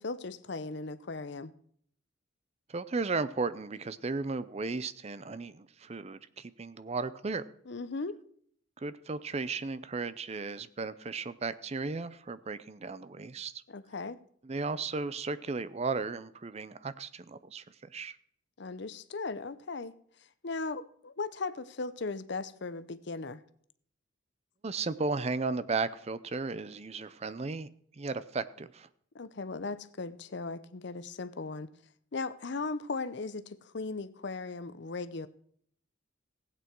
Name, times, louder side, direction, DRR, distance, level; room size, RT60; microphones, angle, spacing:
voice 1, 0.0-1.5 7.7-8.2 13.7-14.2 18.6-19.9 20.4-23.4 29.1-31.7 32.1-35.3, left 3 dB, 60° left, 14 dB, 0.7 m, -37 dB
voice 2, 2.7-7.4 8.8-13.6 14.4-17.6 17.9-18.2 24.6-27.7 28.0-28.9, right 4 dB, 30° right, 15 dB, 0.5 m, -35 dB
16.0 x 8.6 x 4.6 m, 0.63 s
head